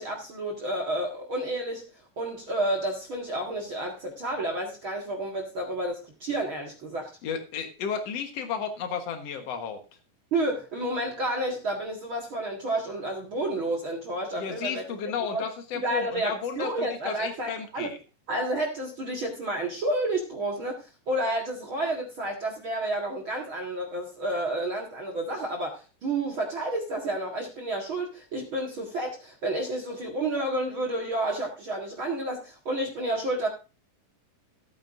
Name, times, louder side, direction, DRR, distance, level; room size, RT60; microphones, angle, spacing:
voice 1, 0.0-1.8 2.2-7.1 10.3-14.8 15.3-15.4 15.8-17.9 18.3-33.5, right 1 dB, 45° right, 2 dB, 1.7 m, -30 dB
voice 2, 7.2-9.8 14.4-18.0, left 7 dB, 85° left, 6 dB, 1.4 m, -33 dB
16.5 x 9.1 x 2.6 m, 0.31 s
omnidirectional pair, 5.0 m